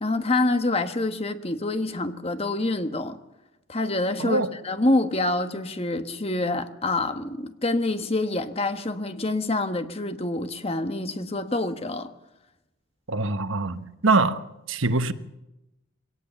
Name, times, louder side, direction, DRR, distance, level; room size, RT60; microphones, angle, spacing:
voice 1, 0.0-3.2 3.7-12.1, left 2 dB, 30° left, 1.3 m, -26 dB
voice 2, 13.1-14.4 14.7-15.1, right 3 dB, 70° right, 1.1 m, -23 dB
22.5 x 18.0 x 7.0 m
head